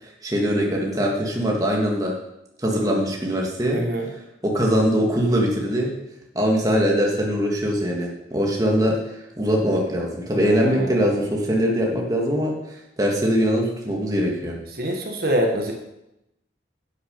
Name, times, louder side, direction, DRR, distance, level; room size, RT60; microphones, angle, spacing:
voice 1, 0.0-2.1 2.6-3.8 4.4-5.9 6.3-14.6, equal, 20° right, -1 dB, 1.8 m, -22 dB
voice 2, 3.7-4.1 10.4-11.0 14.7-15.7, right 1 dB, 55° right, 1 dB, 1.7 m, -25 dB
11.0 x 8.7 x 5.3 m, 0.88 s
head